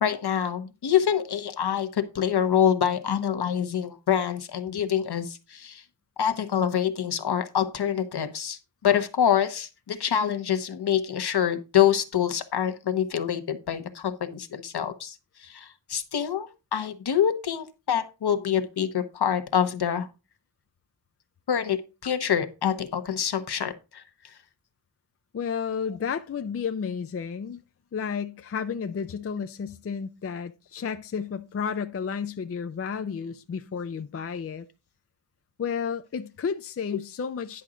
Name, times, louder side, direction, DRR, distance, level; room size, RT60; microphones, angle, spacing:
voice 1, 0.0-5.8 6.2-15.2 15.4-20.1 21.5-24.0, left 9 dB, 65° left, 1.0 m, -26 dB
voice 2, 25.3-27.6 27.9-34.7 35.6-37.6, left 6 dB, 35° left, 0.4 m, -32 dB
10.0 x 6.1 x 3.8 m
wide cardioid pair, 155°, 43 cm